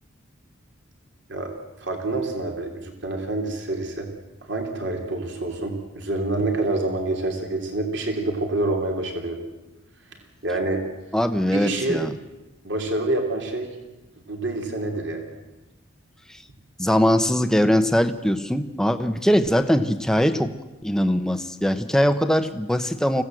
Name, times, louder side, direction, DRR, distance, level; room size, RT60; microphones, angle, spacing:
voice 1, 1.8-4.1 4.4-9.4 10.4-10.8 11.5-12.0 12.6-13.7 14.3-15.3, right 2 dB, 60° right, 3 dB, 3.1 m, -27 dB
voice 2, 11.1-12.1 16.8-20.5 20.8-23.2, equal, 5° left, 8 dB, 0.9 m, -21 dB
24.5 x 16.5 x 7.8 m, 1.1 s
head